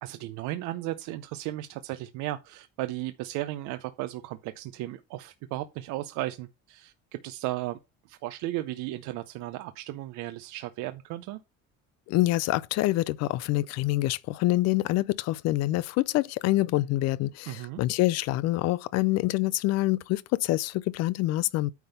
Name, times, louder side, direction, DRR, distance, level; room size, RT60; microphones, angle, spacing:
voice 1, 0.0-7.8 8.1-11.4 17.5-17.8, right 15 dB, 80° right, 0.7 m, -35 dB
voice 2, 12.1-21.7, left 17 dB, 60° left, 0.5 m, -26 dB
9.2 x 3.5 x 5.6 m
cardioid pair, 175°, 30 cm